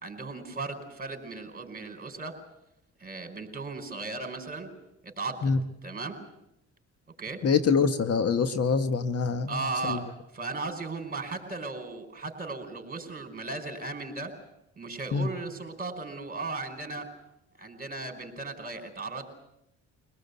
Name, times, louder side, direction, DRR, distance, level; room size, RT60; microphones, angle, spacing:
voice 1, 0.0-2.4 3.0-4.7 5.0-5.5 5.8-6.2 7.2-7.4 9.5-14.4 14.8-17.1 17.6-19.3, right 3 dB, 30° right, 5 dB, 4.8 m, -36 dB
voice 2, 7.4-10.0 15.1-15.3, left 5 dB, 55° left, 10 dB, 1.3 m, -25 dB
24.0 x 18.5 x 8.2 m, 0.83 s
cardioid pair, 90°, 30 cm